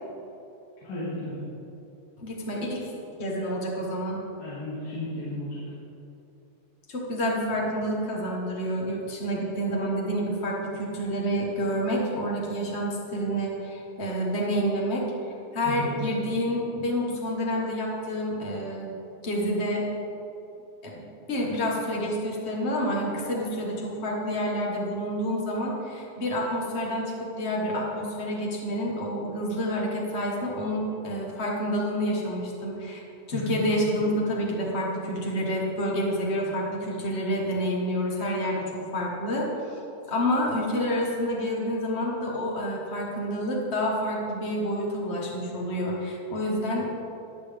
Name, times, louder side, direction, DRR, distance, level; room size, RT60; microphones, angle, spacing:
voice 1, 0.8-1.4 4.4-5.6 15.6-16.0 33.3-33.6, left 2 dB, 90° left, -10 dB, 4.2 m, -34 dB
voice 2, 2.2-2.9 3.2-4.2 6.9-15.0 15.5-18.9 19.2-19.9 20.8-39.8 40.1-46.9, equal, 65° left, -3 dB, 0.6 m, -28 dB
19.5 x 6.7 x 3.5 m, 2.8 s
omnidirectional pair, 3.9 m